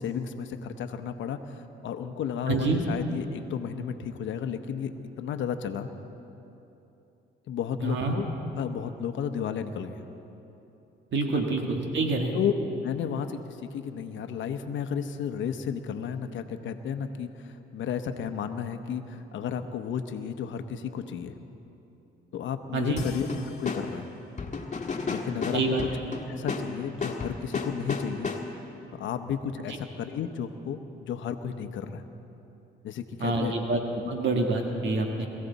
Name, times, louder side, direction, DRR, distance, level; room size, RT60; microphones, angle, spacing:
voice 1, 0.0-5.9 7.5-8.3 8.6-10.1 11.3-11.4 12.3-12.5 12.8-21.4 22.3-24.1 25.1-25.6 26.3-28.3 29.0-32.0 32.8-33.5, left 7 dB, 75° left, 7 dB, 0.9 m, -33 dB
voice 2, 2.5-2.8 7.8-8.2 11.1-12.3 22.7-23.0 25.5-25.8 33.2-33.8 34.1-35.3, right 3 dB, 65° right, 2 dB, 1.7 m, -27 dB
sound 1, 23.0-28.7, left 4 dB, 35° left, 1.6 m, -34 dB
22.5 x 15.0 x 4.1 m, 2.9 s
cardioid pair, 90°, 20 cm